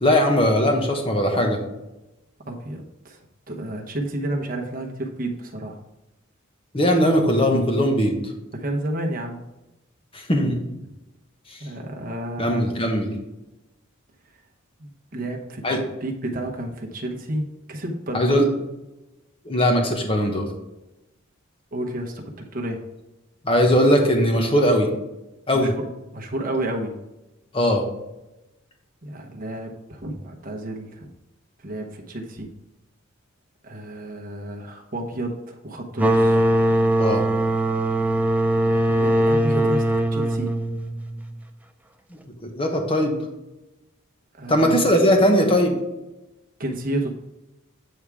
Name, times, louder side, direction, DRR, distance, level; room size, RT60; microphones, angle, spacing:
voice 1, 0.0-1.6 6.7-8.3 10.1-10.6 11.5-11.6 12.4-13.2 15.6-15.8 18.1-18.5 19.4-20.5 23.4-24.9 25.5-25.7 27.5-27.8 37.0-37.2 42.4-43.2 44.5-45.8, equal, 25° left, 2 dB, 1.1 m, -19 dB
voice 2, 2.5-3.2 3.5-5.8 8.5-9.4 11.6-12.7 14.8-18.4 21.7-22.8 25.5-25.7 26.1-26.9 29.0-31.1 31.6-32.5 33.6-36.4 38.9-39.8 40.1-40.5 44.3-44.9 46.6-47.1, right 1 dB, 40° right, 2 dB, 1.0 m, -31 dB
sound 1, 36.0-41.4, right 1 dB, 5° right, 0.4 m, -21 dB
8.5 x 3.6 x 4.7 m, 0.96 s
head